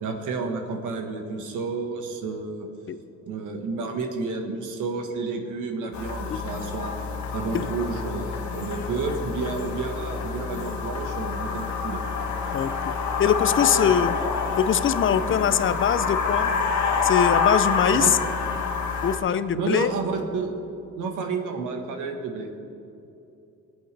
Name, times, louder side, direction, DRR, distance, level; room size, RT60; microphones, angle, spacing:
voice 1, 0.0-2.7 3.2-6.9 7.3-12.0 13.7-13.9 15.3-15.4 17.9-18.1 19.5-20.6 21.0-22.5, right 4 dB, 80° right, 3 dB, 1.5 m, -30 dB
sound 1, 5.9-19.2, left 5 dB, 65° left, 1.5 m, -27 dB
sound 2, 7.2-16.8, right 5 dB, 10° left, 2.9 m, -51 dB
voice 2, 12.5-12.9 13.2-14.1 14.6-16.5 17.0-18.2 19.0-19.9, left 8 dB, 40° left, 14 dB, 0.6 m, -22 dB
20.5 x 8.0 x 3.4 m, 2.8 s
cardioid pair, 90°, 30 cm